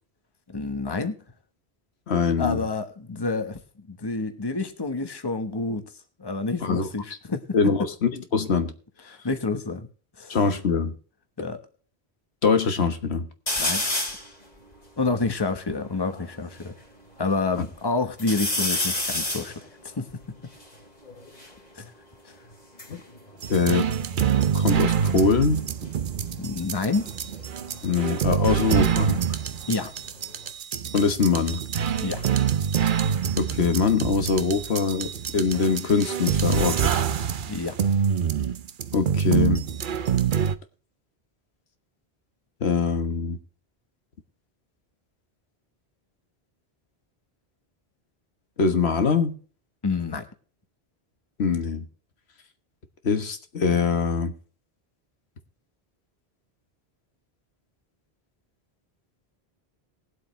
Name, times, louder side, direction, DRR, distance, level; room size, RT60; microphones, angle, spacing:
voice 1, 0.5-1.1 2.4-3.6 3.9-5.9 6.2-7.4 9.2-9.9 10.2-10.4 11.4-11.6 13.6-13.8 15.0-16.7 17.2-19.7 20.0-20.1 21.7-21.9 22.2-22.3 26.4-27.1 29.7-29.9 32.0-32.3 37.5-37.8 49.8-50.2, left 3 dB, 25° left, 1.2 m, -28 dB
voice 2, 2.1-2.6 6.6-6.9 7.5-8.7 10.3-10.9 12.4-13.3 17.6-17.7 22.9-23.0 23.5-23.9 24.5-25.6 27.8-29.2 30.9-31.6 33.3-37.0 38.9-39.6 42.6-43.4 48.6-49.4 51.4-51.8 53.0-54.3, left 5 dB, 80° left, 1.5 m, -23 dB
sound 1, 13.5-14.3 14.9-15.0 15.1-16.7 17.2-17.8 18.2-21.6 22.5-24.4 24.7-25.2 26.7-29.4 29.7-30.5, left 1 dB, 40° left, 2.6 m, -32 dB
sound 2, 23.4-40.6, right 8 dB, 55° right, 0.8 m, -26 dB
20.0 x 7.8 x 3.2 m
omnidirectional pair, 1.1 m